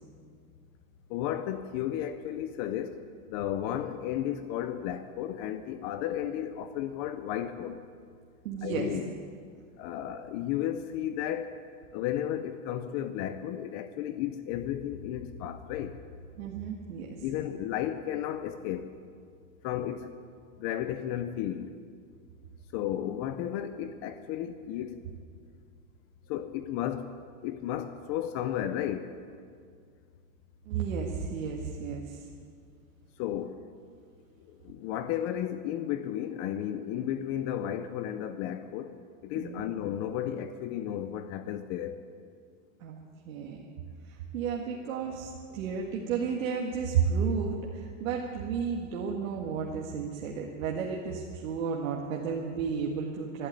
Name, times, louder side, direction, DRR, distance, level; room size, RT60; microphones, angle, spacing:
voice 1, 1.1-3.0 3.3-7.8 8.6-9.1 9.8-11.5 11.9-16.0 17.2-19.0 19.6-20.1 20.6-21.7 22.7-25.0 26.3-27.1 27.4-29.1 33.2-33.6 34.5-39.0 39.2-42.0, left 11 dB, 30° left, 10 dB, 0.5 m, -33 dB
voice 2, 8.4-8.9 16.4-17.2 30.7-32.3 39.4-39.7 42.8-43.0 43.3-43.7 44.1-53.5, right 6 dB, 80° right, -1 dB, 1.9 m, -32 dB
12.0 x 11.5 x 9.8 m, 2.1 s
supercardioid pair, 165°, 40 cm